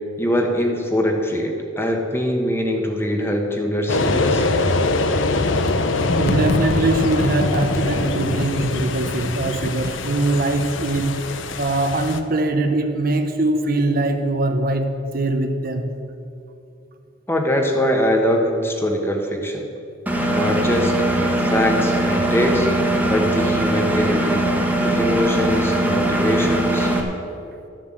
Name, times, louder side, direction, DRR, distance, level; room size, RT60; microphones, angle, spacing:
voice 1, 0.2-4.4 17.3-19.7 20.3-22.7 23.1-24.4 24.8-27.0, equal, 10° left, 2 dB, 1.2 m, -22 dB
sound 1, 3.9-12.2, left 2 dB, 85° left, 0.8 m, -23 dB
sound 2, 6.1-11.6, left 2 dB, 50° left, 0.6 m, -30 dB
voice 2, 6.2-11.3 11.6-16.0 22.9-23.0, right 2 dB, 50° right, 6 dB, 0.8 m, -22 dB
Engine, 20.1-27.0, right 1 dB, 10° right, 1.2 m, -20 dB
13.5 x 7.6 x 7.6 m, 2.7 s
head